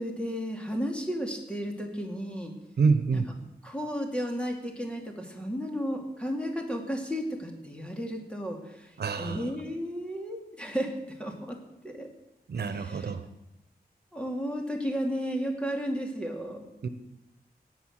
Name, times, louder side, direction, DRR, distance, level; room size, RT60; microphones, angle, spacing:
voice 1, 0.0-2.5 3.1-3.2 3.6-11.6 11.8-12.1 12.6-13.1 14.1-16.6, equal, 5° left, 1 dB, 2.5 m, -33 dB
voice 2, 2.8-3.3 9.0-9.5 12.5-13.3 16.8-16.9, right 4 dB, 85° right, 10 dB, 1.1 m, -27 dB
18.0 x 8.1 x 6.6 m, 0.92 s
wide cardioid pair, 115°, 16 cm